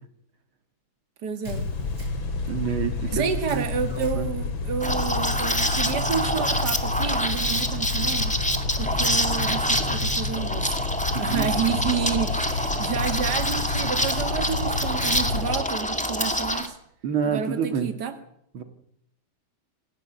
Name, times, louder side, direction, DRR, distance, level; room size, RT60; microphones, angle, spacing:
voice 1, 1.2-1.7 3.1-8.4 8.8-10.8 11.1-16.7 17.2-18.2, right 7 dB, 50° right, 7 dB, 2.6 m, -30 dB
sound 1, 1.4-15.6, left 3 dB, 70° left, 3.0 m, -29 dB
Camera, 1.4-2.4 3.4-4.2 5.5-6.3 7.5-8.3, right 1 dB, 20° right, 7.8 m, -51 dB
voice 2, 2.5-3.2 3.5-3.7 3.9-4.3 11.1-11.5 17.0-17.9 18.5-18.6, right 7 dB, 75° right, 8 dB, 2.7 m, -28 dB
Liquid, 4.8-16.7, equal, 5° left, 2.0 m, -26 dB
27.5 x 16.5 x 8.0 m, 0.72 s
omnidirectional pair, 2.3 m